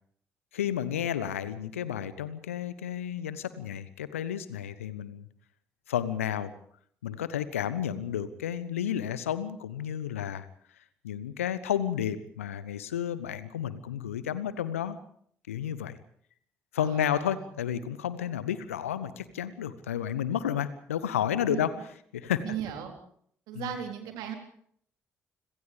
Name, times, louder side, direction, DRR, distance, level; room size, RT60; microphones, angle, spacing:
voice 1, 0.5-5.3 5.9-6.5 7.0-10.5 11.0-15.0 15.5-16.0 16.7-21.7 22.1-22.4 23.5-23.7, left 9 dB, 80° left, 15 dB, 1.1 m, -31 dB
voice 2, 16.8-17.4 21.5-21.6 22.4-22.9 23.5-24.3, right 9 dB, 65° right, 4 dB, 3.9 m, -36 dB
30.0 x 26.5 x 3.5 m, 0.63 s
figure-of-eight pair, 40°, 7 cm